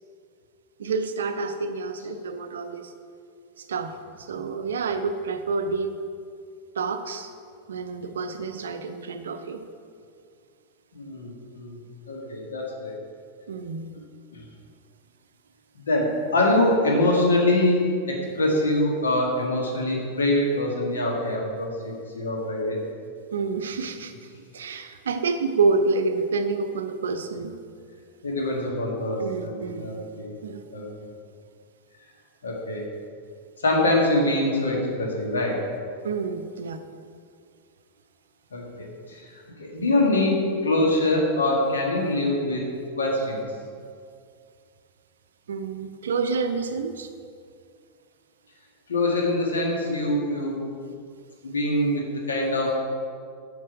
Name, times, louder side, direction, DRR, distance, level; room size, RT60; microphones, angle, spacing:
voice 1, 0.8-2.9 3.6-5.9 6.8-7.3 7.7-9.6 13.5-13.9 23.3-27.6 29.2-30.0 30.4-30.6 36.0-36.8 45.5-47.1, right 4 dB, 65° right, 8 dB, 0.5 m, -28 dB
voice 2, 10.9-12.9 14.3-14.4 15.7-22.8 28.2-30.4 30.7-30.8 32.4-32.8 33.6-35.6 38.5-42.7 43.0-43.4 48.9-50.6 51.4-52.8, left 1 dB, 70° left, -1 dB, 1.6 m, -24 dB
7.6 x 5.9 x 4.7 m, 2.2 s
figure-of-eight pair, 90°, 0 cm